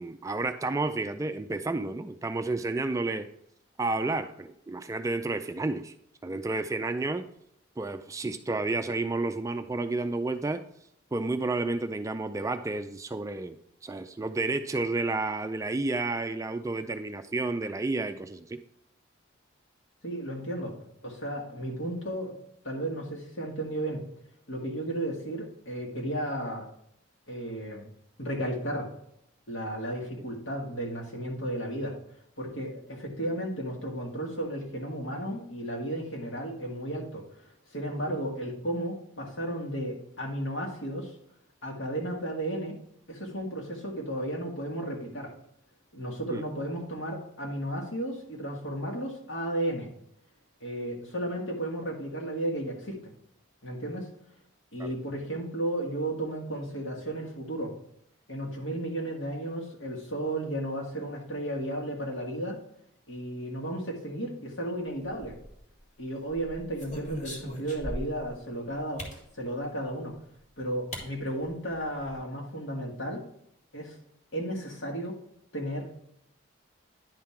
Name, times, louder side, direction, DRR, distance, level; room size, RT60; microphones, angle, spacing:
voice 1, 0.0-3.3 3.8-5.9 6.2-7.3 7.8-10.6 11.1-18.6 38.1-38.2 46.3-46.4 54.8-54.9, right 2 dB, 15° right, 8 dB, 0.3 m, -31 dB
voice 2, 20.0-20.7 21.0-22.4 22.6-24.0 24.5-26.7 27.3-27.9 28.2-28.9 29.5-31.9 32.4-37.2 37.7-41.1 41.6-42.8 43.1-45.3 45.9-49.9 50.6-53.1 53.6-54.1 54.7-57.7 58.3-62.6 63.1-65.3 66.0-69.0 69.4-70.1 70.6-73.2 73.7-73.9 74.3-75.2 75.5-75.9, right 1 dB, 75° left, 0 dB, 2.0 m, -34 dB
sound 1, 65.1-65.8 66.3-68.3 69.0-69.2 70.3-70.4 70.9-71.1 71.4-71.5 71.8-72.2, equal, 40° left, 1.6 m, -39 dB
10.0 x 3.7 x 4.3 m, 0.74 s
head